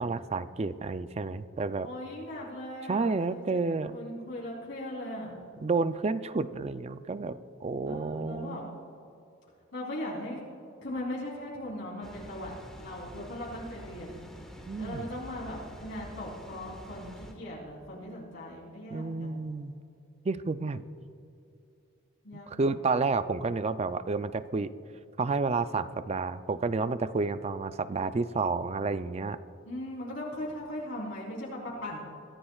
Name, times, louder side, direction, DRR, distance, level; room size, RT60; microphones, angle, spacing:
voice 1, 0.0-1.9 2.9-3.9 5.6-8.8 14.7-15.1 18.9-19.7 20.2-20.8 22.5-24.7 25.2-29.4, right 4 dB, 30° right, 12 dB, 0.4 m, -30 dB
voice 2, 1.8-3.6 3.9-5.4 7.8-8.6 9.7-10.4 10.8-14.2 14.8-19.4 22.2-22.7 29.6-32.0, left 1 dB, 65° left, -5 dB, 3.5 m, -39 dB
Water, 12.0-17.3, equal, 5° left, 1.5 m, -47 dB
23.0 x 14.5 x 2.4 m, 2.7 s
head